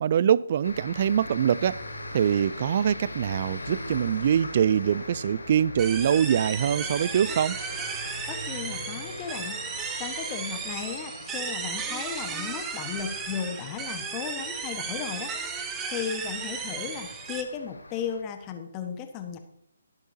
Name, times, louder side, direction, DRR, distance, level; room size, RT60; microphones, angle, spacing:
voice 1, 0.0-1.8 2.1-7.6, right 9 dB, 45° right, 0.4 m, -24 dB
sound 1, 0.6-18.2, left 2 dB, 85° left, 4.8 m, -41 dB
sound 2, 5.8-17.4, right 5 dB, 15° right, 1.1 m, -35 dB
voice 2, 8.3-9.6 10.0-15.3 15.9-19.4, left 7 dB, 25° left, 1.4 m, -35 dB
21.0 x 8.0 x 2.8 m
figure-of-eight pair, 145°, 0 cm